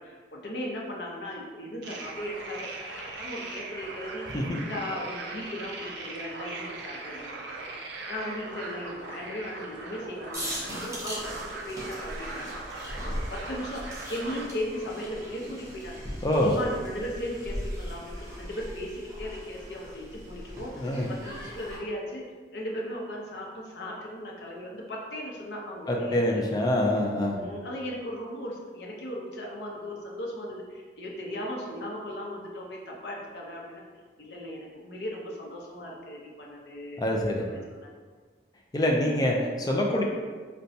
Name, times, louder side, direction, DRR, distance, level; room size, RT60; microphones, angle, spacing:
voice 1, 0.0-16.0 16.4-22.2 22.5-26.4 27.3-33.8 34.2-37.2 37.5-38.0, left 1 dB, 80° left, -2 dB, 0.6 m, -37 dB
sound 1, 1.8-14.5, right 3 dB, 85° right, 0.5 m, -40 dB
sound 2, 10.3-21.8, equal, 15° right, 0.7 m, -39 dB
voice 2, 20.8-21.1 25.9-27.4 37.0-37.4 38.7-40.0, left 1 dB, 20° left, -1 dB, 0.3 m, -25 dB
4.0 x 2.2 x 2.6 m, 1.5 s
head